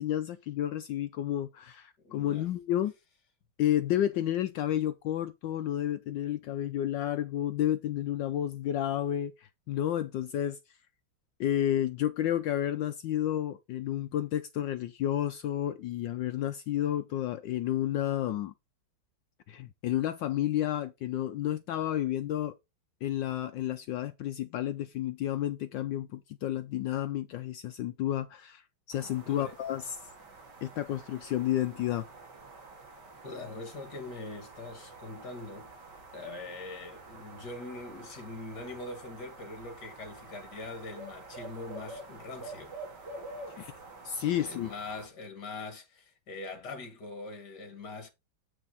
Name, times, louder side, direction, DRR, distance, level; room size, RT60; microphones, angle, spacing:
voice 1, 0.0-2.9 3.6-10.6 11.4-18.5 19.5-22.5 23.0-28.6 28.9-30.0 30.6-32.1 43.6-43.7 44.0-44.7, left 11 dB, 70° left, 1.2 m, -31 dB
voice 2, 2.0-2.5 29.3-29.5 33.2-35.7 36.1-42.7 44.4-48.1, left 3 dB, 50° left, 2.6 m, -42 dB
sound 1, 28.9-45.1, right 2 dB, 55° right, 2.6 m, -48 dB
8.0 x 6.3 x 4.0 m
omnidirectional pair, 2.3 m